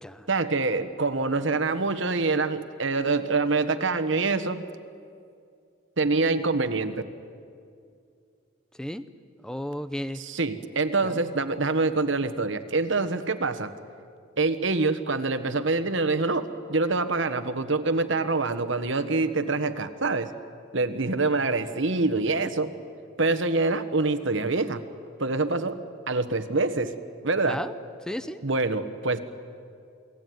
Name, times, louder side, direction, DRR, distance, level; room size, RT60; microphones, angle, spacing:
voice 1, 0.3-4.6 6.0-7.0 10.1-13.7 14.4-20.3 20.7-22.7 23.2-24.8 25.2-25.8 26.1-26.9 27.2-27.6 28.4-29.2, right 3 dB, 60° right, 10 dB, 1.3 m, -25 dB
voice 2, 9.4-10.2 11.0-11.2 27.5-27.7 28.1-28.4, equal, 5° left, 12 dB, 0.8 m, -33 dB
29.0 x 20.0 x 9.4 m, 2.4 s
head